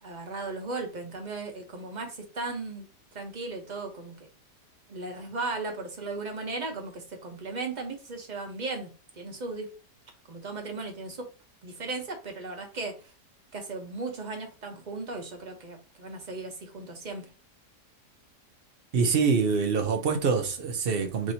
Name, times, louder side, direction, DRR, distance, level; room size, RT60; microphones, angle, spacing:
voice 1, 0.0-2.9 3.1-4.3 4.9-9.7 10.3-11.3 11.6-13.1 13.5-17.3, right 3 dB, 35° right, 0.8 m, -36 dB
voice 2, 18.9-21.3, right 5 dB, 90° right, 0.5 m, -25 dB
6.0 x 2.7 x 2.7 m
omnidirectional pair, 1.8 m